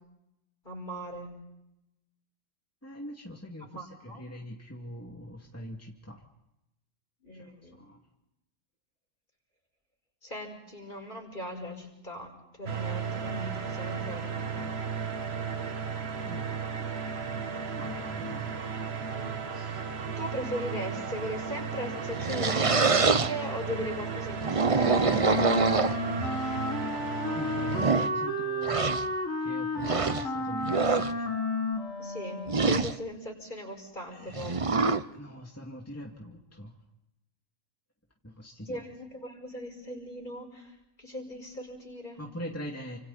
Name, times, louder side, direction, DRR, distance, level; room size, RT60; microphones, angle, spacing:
voice 1, 0.6-1.4 3.7-4.3 7.2-7.8 10.2-12.3 12.6-14.7 19.1-19.7 20.2-25.6 32.0-34.7 38.7-42.2, equal, 40° left, 2 dB, 5.5 m, -39 dB
voice 2, 2.8-6.2 7.3-8.0 16.2-16.5 17.8-18.5 27.3-28.8 29.4-31.4 34.1-34.7 35.1-36.7 38.2-38.8 42.2-43.0, equal, 10° left, 0 dB, 2.4 m, -43 dB
sound 1, 12.7-28.1, right 5 dB, 55° right, 1.6 m, -35 dB
sound 2, 22.0-23.3 24.3-26.3 27.0-27.1 27.6-28.1 28.6-29.1 29.8-30.3 30.6-31.1 32.5-32.9 34.3-35.0, right 4 dB, 30° right, 0.8 m, -25 dB
Wind instrument woodwind instrument, 24.7-32.9, left 1 dB, 85° left, 3.7 m, -32 dB
29.5 x 26.5 x 4.2 m, 0.86 s
omnidirectional pair, 1.3 m